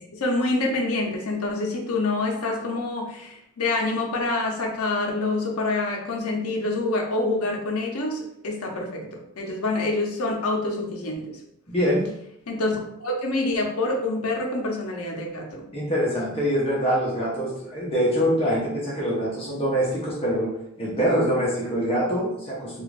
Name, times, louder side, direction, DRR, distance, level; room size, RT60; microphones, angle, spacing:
voice 1, 0.0-11.4 12.5-15.6, left 2 dB, 80° left, 1 dB, 0.7 m, -26 dB
voice 2, 11.7-12.1 15.7-22.8, equal, 25° left, -6 dB, 0.7 m, -24 dB
2.4 x 2.4 x 3.1 m, 0.76 s
head